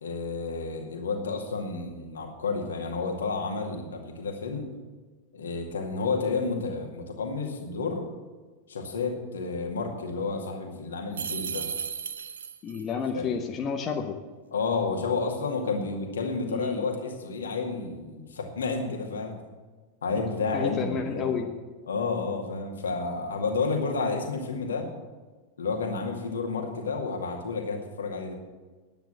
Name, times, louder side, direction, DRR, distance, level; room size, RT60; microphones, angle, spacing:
voice 1, 0.0-4.7 5.3-8.0 8.7-11.7 13.1-13.4 14.5-19.4 20.0-21.4 21.9-24.9 25.6-28.3, left 4 dB, 70° left, 2 dB, 2.1 m, -30 dB
sound 1, 11.1-12.9, right 7 dB, 70° right, 0.6 m, -34 dB
voice 2, 12.6-14.2 16.5-16.9 20.5-21.5, left 6 dB, 30° left, 3 dB, 1.0 m, -30 dB
10.5 x 9.1 x 7.5 m, 1.3 s
figure-of-eight pair, 90°, 0 cm